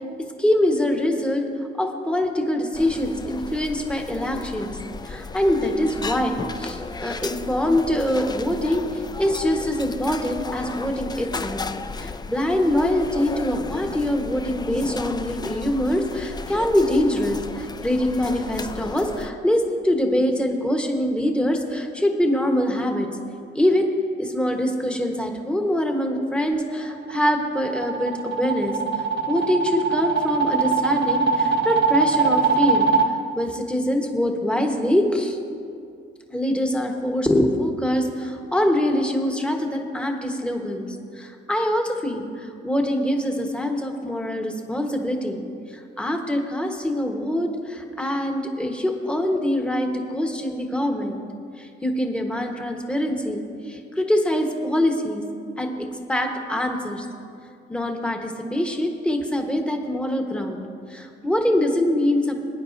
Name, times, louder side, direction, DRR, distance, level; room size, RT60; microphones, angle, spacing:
voice 1, 0.4-1.4 1.8-4.8 5.0-11.6 12.0-23.1 23.5-23.9 24.2-28.7 29.3-32.9 33.4-35.4 36.3-45.4 45.7-51.2 51.6-55.2 55.6-57.1 57.7-60.6 60.9-62.4, left 1 dB, 5° left, 3 dB, 1.2 m, -24 dB
sound 1, 2.7-19.3, left 4 dB, 20° left, 0.4 m, -35 dB
sound 2, 26.9-33.1, right 5 dB, 65° right, 1.1 m, -22 dB
20.5 x 9.7 x 2.6 m, 2.4 s
cardioid pair, 90°, 20 cm